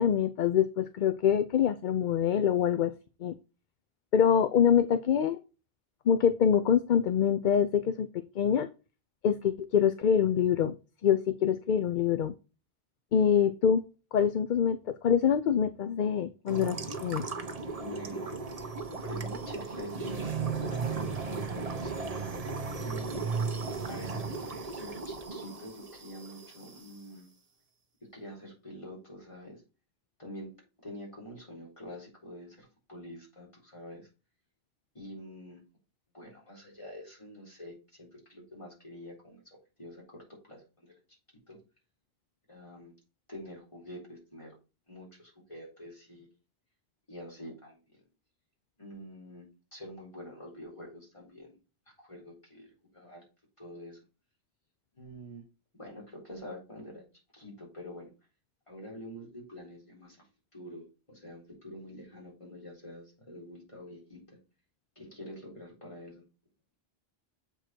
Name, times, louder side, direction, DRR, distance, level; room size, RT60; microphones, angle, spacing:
voice 1, 0.0-2.9 3.2-3.3 4.1-5.4 6.1-8.1 8.4-8.7 9.2-10.7 11.0-12.3 13.1-13.8 14.1-17.2, left 8 dB, 55° left, 11 dB, 0.7 m, -25 dB
sound 1, 16.5-26.9, right 4 dB, 40° right, 1.0 m, -36 dB
voice 2, 17.7-20.3 20.6-22.3 22.8-23.3 23.9-27.3 28.1-29.6 30.2-30.5 30.8-34.1 34.9-35.6 36.1-41.0 41.5-41.6 42.5-42.9 43.3-44.6 44.9-46.3 47.1-47.8 48.8-49.5 49.7-51.6 52.0-52.7 52.9-53.2 53.6-54.0 54.9-55.4 55.7-57.0 57.3-58.1 58.7-60.3 60.5-64.4 65.0-66.2, left 1 dB, 30° left, -3 dB, 4.1 m, -46 dB
7.8 x 4.6 x 4.4 m, 0.32 s
omnidirectional pair, 1.0 m